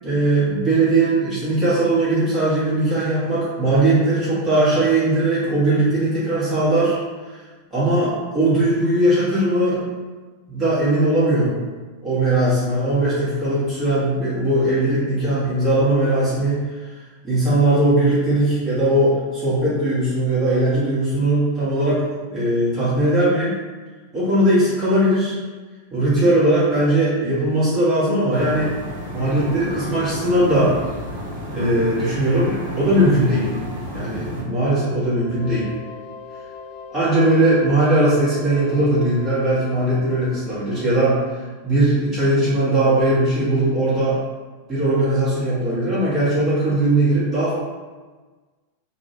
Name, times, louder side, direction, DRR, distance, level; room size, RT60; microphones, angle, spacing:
voice 1, 0.0-7.0 7.7-9.8 10.5-11.6 12.0-16.7 17.2-22.0 22.3-23.5 24.1-25.4 25.9-28.7 29.1-30.7 31.5-33.5 33.9-35.7 36.9-41.2 41.6-44.2 44.7-47.5, right 1 dB, 20° right, -12 dB, 1.0 m, -19 dB
sound 1, 28.3-34.4, equal, 60° right, 0.6 m, -31 dB
sound 2, 35.1-41.7, left 5 dB, 40° left, 0.4 m, -40 dB
2.5 x 2.1 x 2.7 m, 1.3 s
figure-of-eight pair, 90°, 0 cm